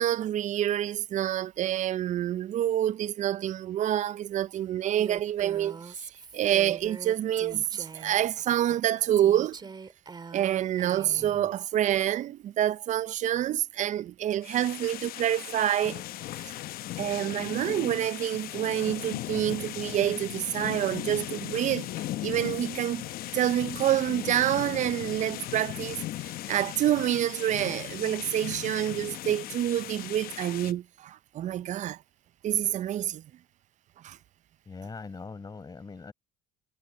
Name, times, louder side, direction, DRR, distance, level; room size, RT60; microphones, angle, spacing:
voice 1, 0.0-9.6 10.3-16.0 17.0-21.9 22.2-23.1 23.3-32.0 32.4-33.2 34.0-34.2, right 11 dB, 45° right, 0.5 m, -27 dB
Female speech woman speaking, 5.0-8.3 9.2-11.4, right 5 dB, 25° right, 2.2 m, -43 dB
voice 2, 11.2-11.5 34.7-36.1, left 4 dB, 25° left, 4.9 m, -42 dB
sound 1, 14.4-30.7, left 14 dB, 60° left, 0.8 m, -37 dB
cardioid pair, 105°, 17 cm